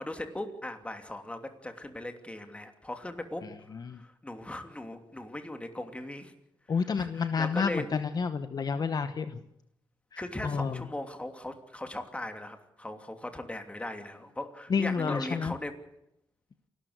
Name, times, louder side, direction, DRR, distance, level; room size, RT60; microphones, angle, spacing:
voice 1, 0.0-6.3 6.8-7.9 10.2-15.7, left 1 dB, 15° left, 7 dB, 2.9 m, -39 dB
voice 2, 3.4-4.0 6.7-9.4 10.4-10.9 14.7-15.5, left 5 dB, 50° left, 11 dB, 1.0 m, -30 dB
28.5 x 13.0 x 8.1 m, 0.81 s
cardioid pair, 85°, 9 cm